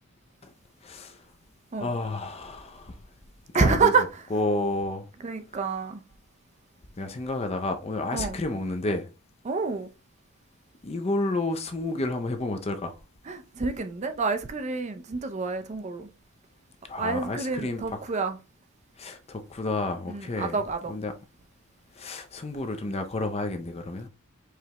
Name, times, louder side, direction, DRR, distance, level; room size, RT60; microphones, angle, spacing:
voice 1, 0.8-1.2 1.8-3.0 3.5-3.9 4.3-5.1 7.0-9.1 10.8-13.0 16.8-18.0 19.0-21.1 21.9-24.1, left 2 dB, 25° left, 0.5 m, -31 dB
voice 2, 3.5-4.0 5.2-6.0 8.1-8.4 9.5-9.9 13.3-16.1 17.0-18.4 20.1-20.9, right 4 dB, 30° right, 0.4 m, -27 dB
4.9 x 3.3 x 2.9 m
head